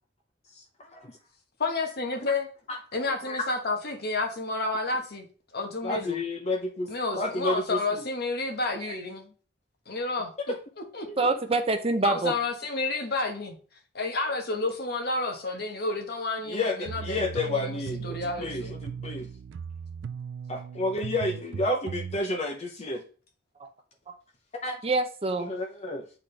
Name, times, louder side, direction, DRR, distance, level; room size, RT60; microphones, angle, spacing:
voice 1, 1.6-2.5 2.9-5.2 5.5-6.2 6.9-9.3 9.9-10.5 10.9-11.3 12.0-13.6 13.9-18.7, left 3 dB, 60° left, 3 dB, 1.3 m, -30 dB
voice 2, 5.8-6.9 7.1-7.8 11.1-11.2 16.5-19.3 20.5-23.0 24.6-24.8 25.5-26.0, left 2 dB, 35° left, 2 dB, 0.7 m, -30 dB
voice 3, 11.2-12.3 23.6-23.7 24.1-24.2 24.8-25.6, right 3 dB, 30° right, 7 dB, 0.6 m, -26 dB
sound 1, 16.9-22.2, right 6 dB, 80° right, 0.3 m, -38 dB
8.5 x 3.8 x 3.3 m, 0.39 s
head